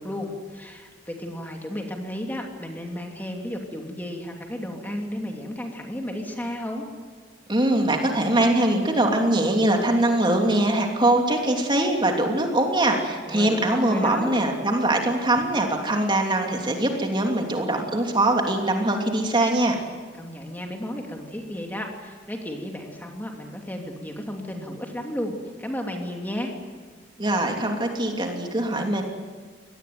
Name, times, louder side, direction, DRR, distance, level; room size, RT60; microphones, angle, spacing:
voice 1, 0.0-6.8 13.3-14.3 20.2-26.5, left 1 dB, 10° left, 2 dB, 2.8 m, -33 dB
voice 2, 7.5-19.8 27.2-29.0, right 1 dB, 25° right, 2 dB, 3.1 m, -22 dB
24.5 x 19.5 x 9.5 m, 1.6 s
head